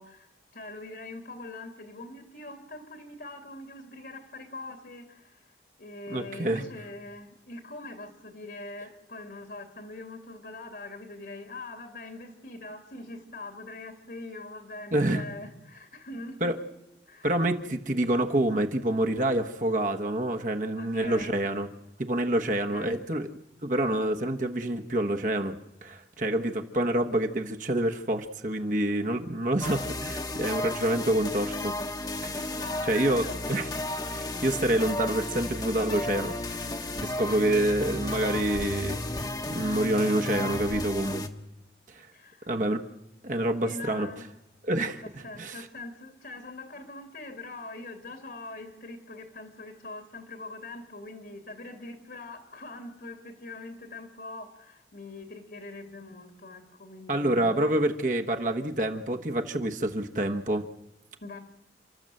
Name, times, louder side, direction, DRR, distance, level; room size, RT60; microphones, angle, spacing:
voice 1, 0.0-5.5 5.8-16.5 17.1-17.3 20.7-21.4 22.7-23.0 32.5-33.6 42.1-42.5 43.6-44.3 45.0-57.7 61.2-61.4, left 2 dB, 65° left, 5 dB, 2.6 m, -43 dB
voice 2, 6.1-6.6 14.9-15.2 16.4-16.6 17.2-21.7 22.0-23.3 23.6-31.8 32.2-32.5 32.8-33.7 34.1-36.6 37.0-39.0 39.5-41.3 41.9-42.1 42.5-42.8 43.2-44.1 44.6-45.0 45.4-45.7 57.1-60.7, right 1 dB, 45° right, 4 dB, 1.2 m, -27 dB
sound 1, 29.6-41.3, left 2 dB, 20° left, 1.2 m, -33 dB
30.0 x 12.5 x 7.7 m, 0.97 s
head